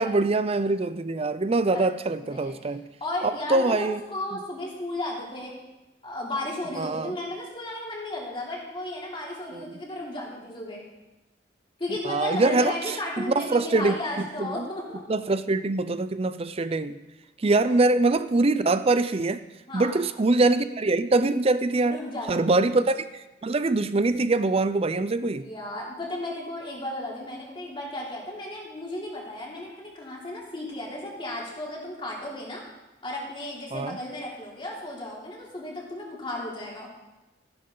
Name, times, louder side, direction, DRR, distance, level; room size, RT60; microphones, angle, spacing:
voice 1, 0.0-2.8 3.2-4.0 6.7-7.1 9.5-9.8 12.0-12.7 13.2-14.0 14.4-14.7 15.1-17.0 17.4-19.4 19.7-22.0 22.3-25.4 33.7-34.0, right 2 dB, 30° right, 13 dB, 0.5 m, -24 dB
voice 2, 2.2-2.5 3.0-5.5 6.0-10.8 11.8-15.0 17.7-17.8 19.7-20.0 21.9-22.7 25.3-32.6 33.0-36.9, left 1 dB, 30° left, -4 dB, 3.2 m, -34 dB
14.0 x 11.5 x 3.9 m, 1.0 s
head